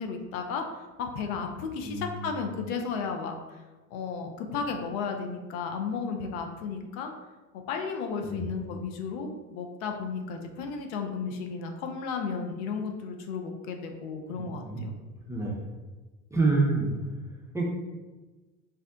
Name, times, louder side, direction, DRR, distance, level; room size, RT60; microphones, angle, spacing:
voice 1, 0.0-3.6 3.9-7.1 7.5-14.9, left 5 dB, 65° left, 4 dB, 0.6 m, -34 dB
voice 2, 1.8-2.2 8.2-8.5 14.3-14.8 15.3-15.6 16.3-16.9 17.5-17.6, right 3 dB, 5° right, -4 dB, 0.5 m, -27 dB
2.7 x 2.1 x 3.6 m, 1.2 s
hypercardioid pair, 80°, 43 cm